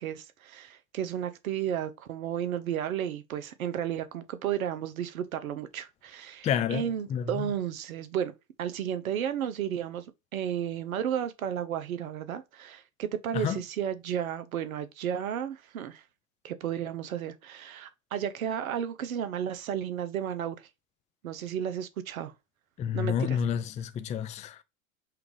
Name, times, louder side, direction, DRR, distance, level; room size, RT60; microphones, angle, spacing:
voice 1, 0.0-8.3 8.6-10.1 10.3-16.0 16.4-20.7 21.2-22.3 22.9-23.4, right 9 dB, 85° right, 0.7 m, -33 dB
voice 2, 6.4-6.8 7.1-7.4 13.3-13.6 22.8-24.6, left 8 dB, 20° left, 0.4 m, -29 dB
5.8 x 2.4 x 3.2 m
hypercardioid pair, 90°, 41 cm